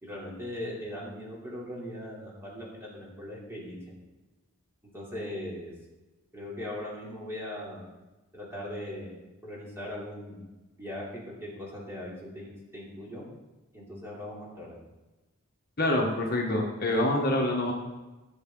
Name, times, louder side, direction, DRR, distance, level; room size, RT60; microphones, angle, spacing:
voice 1, 0.0-3.8 4.9-5.7 6.3-7.9 8.3-9.1 9.4-10.4 10.7-13.2 13.7-14.8, left 1 dB, 10° right, -6 dB, 3.2 m, -39 dB
voice 2, 15.8-17.7, left 1 dB, 45° left, 0 dB, 1.4 m, -26 dB
16.0 x 7.2 x 3.9 m, 1.1 s
head